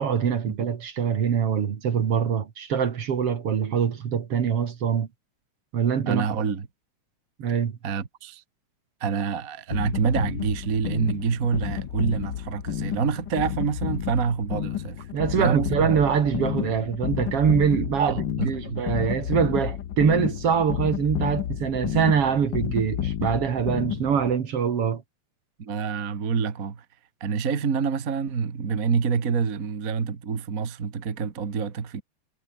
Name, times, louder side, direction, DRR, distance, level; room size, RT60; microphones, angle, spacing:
voice 1, 0.0-5.1 5.7-6.3 7.4-7.7 15.1-25.0, right 7 dB, 55° right, 2.7 m, -24 dB
voice 2, 6.1-6.7 7.8-8.4 9.0-16.1 18.0-18.8 25.6-26.9 27.2-32.0, right 6 dB, 35° right, 1.8 m, -27 dB
sound 1, 9.7-24.4, left 10 dB, 55° left, 1.3 m, -31 dB
omnidirectional pair, 3.3 m